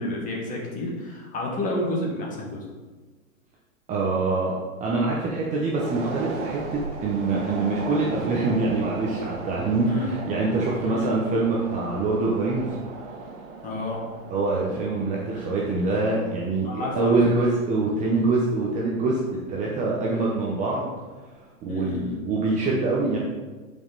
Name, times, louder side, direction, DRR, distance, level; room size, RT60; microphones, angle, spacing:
voice 1, 0.0-2.6 9.8-10.1 10.8-11.1 13.6-14.0 16.6-17.2 20.0-20.3 21.7-22.2, left 2 dB, 20° left, -2 dB, 1.6 m, -30 dB
voice 2, 3.9-12.8 14.3-19.2 19.5-20.9 21.6-23.2, right 3 dB, 15° right, -4 dB, 0.9 m, -25 dB
sound 1, 5.8-20.3 20.7-20.8, right 4 dB, 55° right, 1.7 m, -37 dB
10.5 x 5.5 x 4.0 m, 1.3 s
hypercardioid pair, 145°, 42 cm